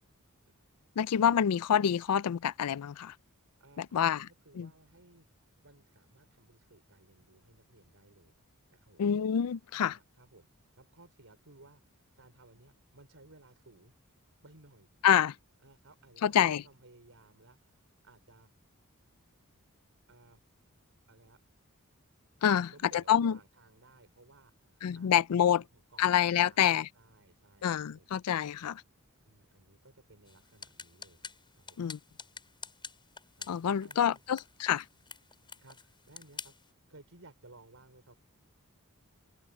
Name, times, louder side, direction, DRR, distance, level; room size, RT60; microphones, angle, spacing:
voice 1, 1.0-3.1 3.8-4.2 4.6-4.7 9.0-10.0 15.0-15.3 16.2-16.6 22.4-23.4 24.8-25.6 26.0-26.9 27.6-28.7 31.8-32.0 33.5-34.8, left 9 dB, 90° left, 0.4 m, -27 dB
voice 2, 3.6-5.2 5.6-8.4 8.7-9.0 9.7-10.5 10.7-13.9 14.4-14.9 15.6-18.5 20.1-20.4 21.1-21.4 22.5-25.1 25.4-28.1 28.6-28.7 29.2-31.3 31.5-31.8 33.4-34.2 35.6-36.5 36.9-38.2, right 2 dB, 65° right, 5.3 m, -59 dB
sound 1, 30.3-36.7, left 5 dB, 20° left, 6.5 m, -49 dB
head